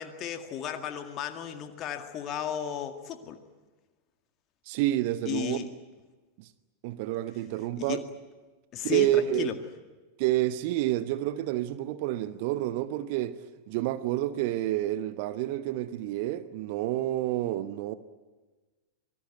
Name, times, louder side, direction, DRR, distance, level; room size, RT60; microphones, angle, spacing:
voice 1, 0.0-3.4 5.3-5.7 7.8-8.0 8.7-9.6, left 9 dB, 35° left, 2.0 m, -34 dB
voice 2, 4.7-5.6 6.4-6.5 6.8-8.0 8.8-9.5 10.2-13.4 13.7-17.9, right 14 dB, 50° right, 1.0 m, -29 dB
26.5 x 19.5 x 9.5 m
figure-of-eight pair, 90°, 0 cm